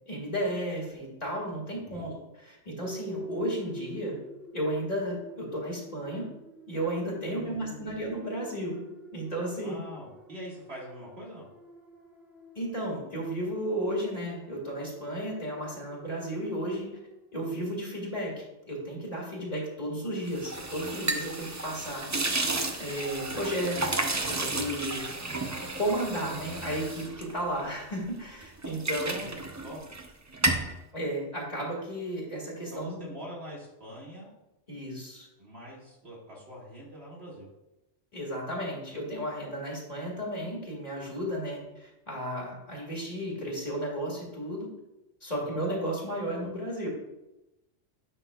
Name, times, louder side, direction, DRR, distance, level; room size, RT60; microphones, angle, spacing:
voice 1, 0.1-4.2 4.5-6.3 6.7-8.8 9.1-9.8 12.6-16.9 17.3-22.1 22.8-24.0 24.3-25.1 25.8-29.2 30.9-33.1 34.7-35.3 38.1-44.7 45.2-46.9, equal, 35° left, -3 dB, 2.0 m, -33 dB
sound 1, 2.8-17.0, left 1 dB, ahead, 0.7 m, -47 dB
voice 2, 7.3-7.9 9.6-11.5 29.1-29.8 32.7-34.3 35.4-37.5 45.3-45.6, equal, 65° right, -5 dB, 2.2 m, -44 dB
sound 2, 20.3-28.0 28.4-30.1 30.3-30.7, right 2 dB, 30° right, 0.3 m, -32 dB
9.9 x 5.7 x 2.3 m, 0.95 s
omnidirectional pair, 1.2 m